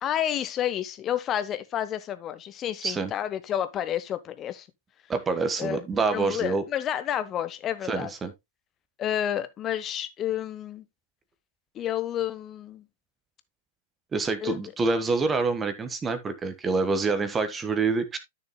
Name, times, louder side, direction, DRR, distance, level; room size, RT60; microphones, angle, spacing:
voice 1, 0.0-4.7 5.6-5.9 6.1-8.1 9.0-10.8 11.7-12.9 14.4-14.6, left 10 dB, 25° left, 1.1 m, -30 dB
voice 2, 5.1-6.6 7.9-8.3 14.1-18.2, right 4 dB, 15° right, 1.5 m, -26 dB
13.0 x 6.7 x 2.2 m
figure-of-eight pair, 100°, 0 cm